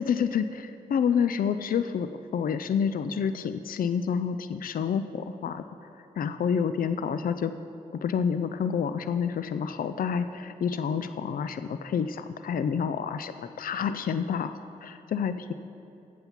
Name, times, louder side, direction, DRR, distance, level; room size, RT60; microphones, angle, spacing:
voice 1, 0.0-2.1 2.3-5.6 6.2-7.5 8.0-15.5, left 7 dB, 65° left, 11 dB, 0.4 m, -28 dB
7.9 x 7.3 x 5.8 m, 2.7 s
cardioid pair, 45°, 16 cm